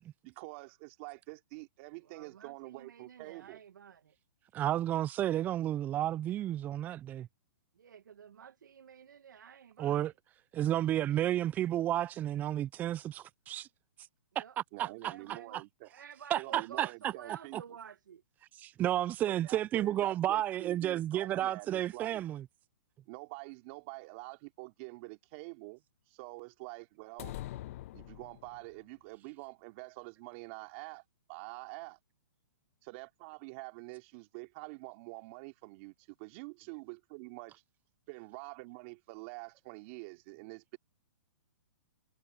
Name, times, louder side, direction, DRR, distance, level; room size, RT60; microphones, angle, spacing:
voice 1, 0.2-3.6 14.7-15.9 16.4-17.6 19.3-22.2 23.1-27.3 27.9-31.0 31.3-32.0 32.8-37.6 38.1-40.8, right 27 dB, 40° right, 2.8 m, -47 dB
voice 2, 2.0-4.2 7.7-10.1 14.3-14.6 14.8-15.6 15.9-18.2, right 8 dB, 80° right, 1.8 m, -51 dB
voice 3, 4.5-7.3 9.8-10.1 10.5-13.7 14.4-14.5 14.8-15.1 16.3-17.1 17.5-17.6 18.6-22.4, right 12 dB, 15° right, 0.4 m, -32 dB
sound 1, 27.2-28.8, left 15 dB, 45° left, 1.2 m, -44 dB
hypercardioid pair, 145°, 10 cm